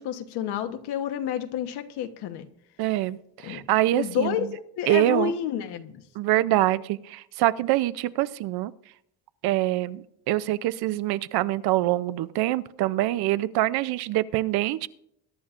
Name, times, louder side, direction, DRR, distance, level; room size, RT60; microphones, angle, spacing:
voice 1, 0.0-2.5 3.4-3.6 4.0-6.0, left 9 dB, 75° left, 8 dB, 1.1 m, -30 dB
voice 2, 2.8-4.5 4.9-5.3 6.2-8.7 9.4-14.9, right 15 dB, 70° right, 16 dB, 0.6 m, -25 dB
21.5 x 11.0 x 2.5 m, 0.73 s
cardioid pair, 165°, 39 cm